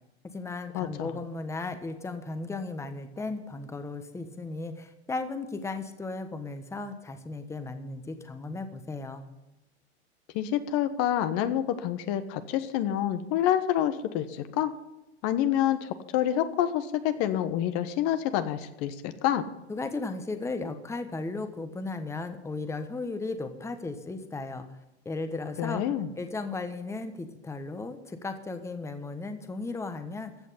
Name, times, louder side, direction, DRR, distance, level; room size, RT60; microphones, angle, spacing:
voice 1, 0.2-9.2 19.7-24.7 25.0-25.8 26.2-30.3, left 3 dB, 10° left, 8 dB, 1.2 m, -35 dB
voice 2, 0.7-1.1 10.3-14.7 15.2-19.4 25.6-26.1, left 11 dB, 50° left, 11 dB, 1.2 m, -27 dB
15.5 x 6.4 x 9.8 m, 0.97 s
hypercardioid pair, 115°, 33 cm